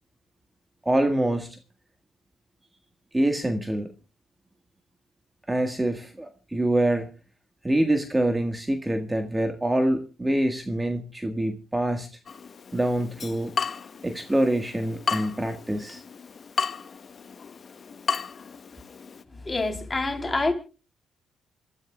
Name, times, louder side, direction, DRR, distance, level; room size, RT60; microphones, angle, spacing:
voice 1, 0.8-1.6 3.1-3.9 5.5-7.1 7.6-12.1 12.7-13.5 14.0-16.0, right 1 dB, 15° right, 1.6 m, -25 dB
Water tap faucet / Drip, 12.3-19.2, left 6 dB, 45° left, 1.0 m, -34 dB
voice 2, 19.3-20.5, left 2 dB, 20° left, 3.5 m, -27 dB
27.5 x 13.5 x 2.3 m
cardioid pair, 90°, 0 cm